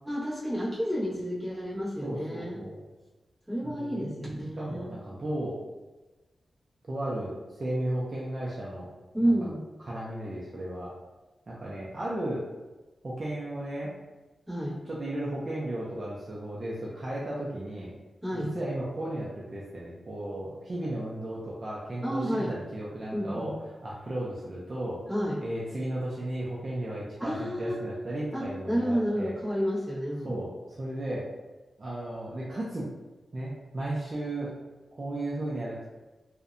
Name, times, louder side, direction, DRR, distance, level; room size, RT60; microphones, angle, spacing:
voice 1, 0.0-2.6 3.5-4.9 9.1-9.6 14.5-14.8 18.2-18.6 22.0-22.5 23.1-23.5 25.1-25.4 27.2-27.8 28.3-30.4, equal, 5° right, -11 dB, 1.1 m, -30 dB
voice 2, 2.0-2.8 3.7-4.3 4.6-5.6 6.9-8.9 9.2-9.5 9.8-10.9 11.5-12.5 13.0-13.9 14.9-17.9 18.3-23.5 23.8-25.0 25.4-29.3 30.3-31.3 31.8-32.8 33.3-34.5 35.0-35.9, right 1 dB, 40° right, -6 dB, 0.4 m, -34 dB
2.6 x 2.1 x 2.4 m, 1.2 s
wide cardioid pair, 145°, 0 cm